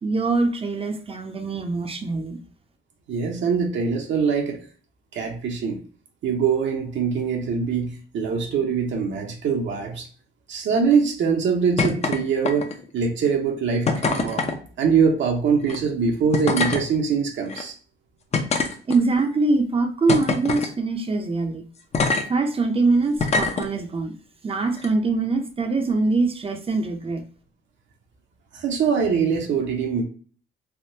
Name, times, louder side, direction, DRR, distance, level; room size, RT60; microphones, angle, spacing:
voice 1, 0.0-2.4 18.9-21.6 22.3-24.1 24.4-27.2, right 3 dB, 30° right, 6 dB, 0.5 m, -23 dB
voice 2, 3.1-4.6 5.1-5.8 6.2-10.1 10.5-14.4 14.8-17.7 28.5-30.0, right 6 dB, 70° right, 2 dB, 0.7 m, -23 dB
sound 1, 11.8-12.2 12.4-12.9 13.9-14.6 15.6-15.8 16.3-16.8 17.5-17.6 18.3-19.2 20.1-20.7 21.9-22.2 23.2-23.7 24.7-24.9, left 4 dB, 35° left, 0.6 m, -23 dB
3.5 x 2.2 x 2.7 m, 0.42 s
cardioid pair, 90°, 20 cm